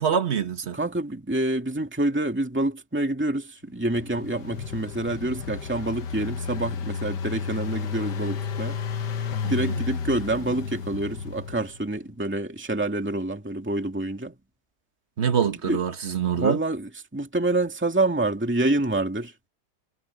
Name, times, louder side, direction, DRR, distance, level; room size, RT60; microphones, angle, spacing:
voice 1, 0.0-0.8 9.4-9.7 15.2-16.6, right 7 dB, 40° right, 1.3 m, -25 dB
voice 2, 0.7-8.8 9.5-14.3 15.5-15.8 16.3-19.3, right 2 dB, 5° right, 2.3 m, -27 dB
Engine, 3.8-11.8, left 6 dB, 75° left, 1.7 m, -32 dB
omnidirectional pair, 1.9 m